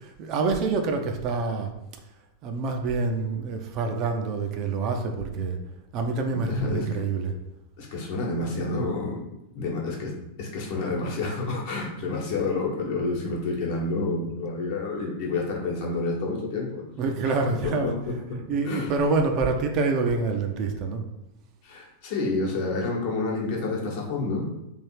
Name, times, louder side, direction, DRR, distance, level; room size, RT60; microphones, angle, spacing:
voice 1, 0.0-1.7 2.4-5.6 5.9-7.3 17.0-17.9 18.5-21.0, right 4 dB, 40° right, 4 dB, 0.5 m, -26 dB
voice 2, 6.3-7.0 7.8-9.3 9.5-10.1 10.4-16.8 17.2-18.9 21.6-24.5, left 3 dB, 50° left, -1 dB, 1.1 m, -29 dB
3.5 x 2.7 x 4.5 m, 0.88 s
figure-of-eight pair, 90°, 0 cm